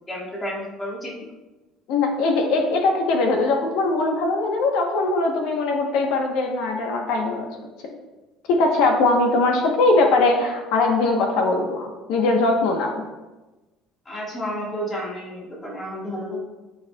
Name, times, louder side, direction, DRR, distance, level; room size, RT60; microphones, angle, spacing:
voice 1, 0.1-1.3 14.1-16.5, equal, 20° left, -4 dB, 1.9 m, -31 dB
voice 2, 1.9-7.5 7.8-7.9 8.5-13.0, left 3 dB, 75° left, 2 dB, 1.1 m, -21 dB
11.0 x 4.8 x 2.4 m, 1.1 s
cardioid pair, 150°, 0 cm